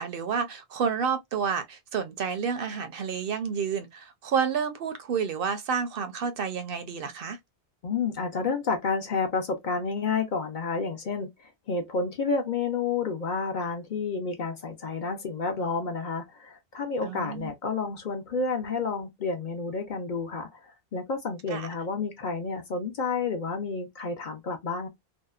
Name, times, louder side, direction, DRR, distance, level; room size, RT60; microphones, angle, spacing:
voice 1, 0.0-7.4 17.0-17.5 21.5-21.7, right 6 dB, 65° right, 0.7 m, -30 dB
voice 2, 7.8-24.9, left 4 dB, 55° left, 0.7 m, -30 dB
2.7 x 2.1 x 2.3 m
omnidirectional pair, 1.1 m